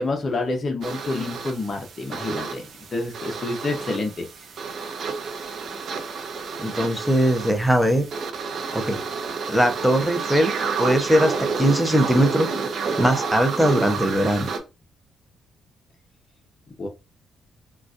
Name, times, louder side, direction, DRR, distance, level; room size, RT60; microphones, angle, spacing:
voice 1, 0.0-4.3 16.8-16.9, left 2 dB, 40° left, 2 dB, 0.7 m, -28 dB
sound 1, 0.8-14.6, right 5 dB, 60° right, 0.7 m, -30 dB
voice 2, 6.6-8.0 8.7-9.0 9.5-10.5 10.8-12.5 13.0-14.5, equal, ahead, 5 dB, 0.7 m, -20 dB
3.9 x 2.4 x 2.4 m, 0.26 s
cardioid pair, 90°, 0 cm